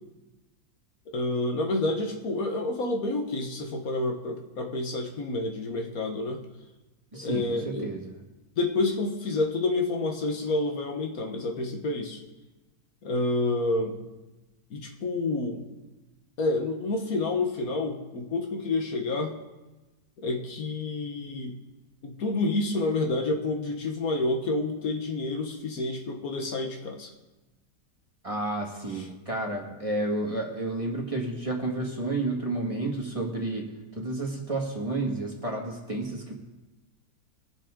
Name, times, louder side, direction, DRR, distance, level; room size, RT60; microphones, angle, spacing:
voice 1, 1.1-6.4 7.1-7.9 8.6-12.2 13.0-14.0 14.7-15.7 16.4-19.3 20.2-21.5 22.0-27.1 28.9-29.1, left 2 dB, 65° left, 2 dB, 1.6 m, -29 dB
voice 2, 7.1-8.0 28.2-33.6 34.0-36.3, right 2 dB, 20° right, -1 dB, 1.9 m, -31 dB
22.0 x 7.4 x 3.7 m, 1.1 s
omnidirectional pair, 1.6 m